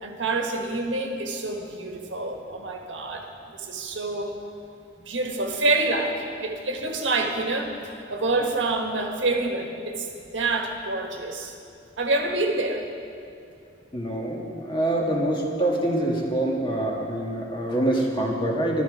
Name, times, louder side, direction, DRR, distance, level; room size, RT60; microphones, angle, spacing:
voice 1, 0.0-4.3 5.0-10.1 10.3-11.5 12.0-12.9, right 2 dB, 85° right, 2 dB, 1.5 m, -27 dB
voice 2, 13.9-18.8, right 1 dB, 25° left, -2 dB, 1.8 m, -25 dB
13.5 x 12.5 x 4.9 m, 2.4 s
head